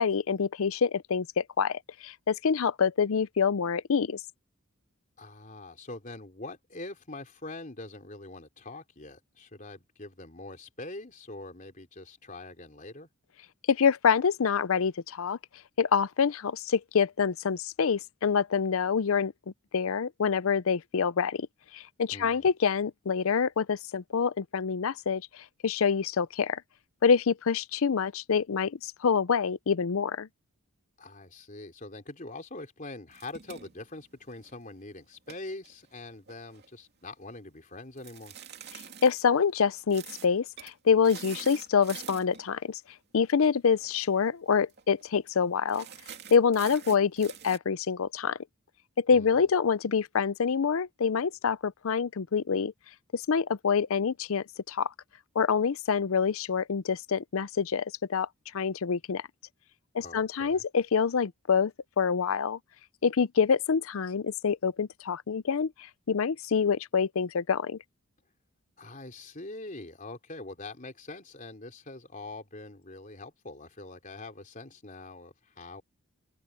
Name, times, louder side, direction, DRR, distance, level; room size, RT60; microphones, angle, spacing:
voice 1, 0.0-4.2 13.7-15.4 15.8-19.3 19.7-21.5 21.7-26.6 27.0-30.3 39.0-42.8 43.1-45.9 46.3-48.4 49.0-52.7 53.1-54.9 55.4-58.3 58.5-59.2 59.9-61.7 62.0-62.6 63.0-65.7 66.1-67.8, left 6 dB, 65° left, 0.5 m, -26 dB
voice 2, 5.2-13.1 22.1-22.5 31.0-38.3 49.1-49.5 60.0-60.6 68.8-75.8, left 2 dB, 35° left, 3.6 m, -44 dB
sound 1, 33.1-34.6 35.1-36.7 38.0-39.1 39.9-40.3 40.6-40.7 41.0-42.5 43.7-44.0 44.3-44.4 44.7-45.0 45.7-47.6, right 8 dB, 50° right, 2.9 m, -46 dB
open air
head